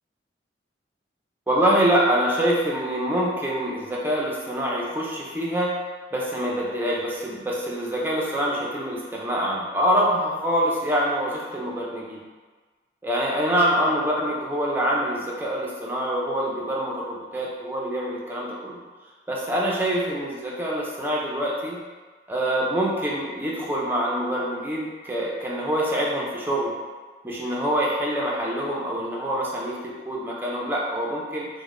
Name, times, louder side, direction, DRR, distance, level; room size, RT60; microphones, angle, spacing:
voice 1, 1.5-5.7 6.1-12.2 13.0-18.8 19.3-21.8 22.3-26.8 27.2-31.5, equal, 10° right, -4 dB, 0.4 m, -25 dB
4.7 x 2.1 x 2.5 m, 1.4 s
head